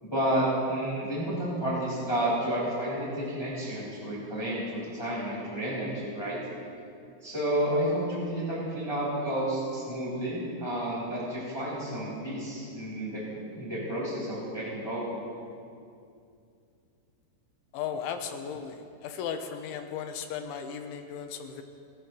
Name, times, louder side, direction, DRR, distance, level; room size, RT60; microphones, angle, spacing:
voice 1, 0.0-6.4 7.2-13.2 13.5-15.1, right 1 dB, 5° left, -7 dB, 4.8 m, -31 dB
voice 2, 17.7-21.6, left 7 dB, 85° left, 6 dB, 3.4 m, -36 dB
30.0 x 14.5 x 3.3 m, 2.4 s
omnidirectional pair, 5.5 m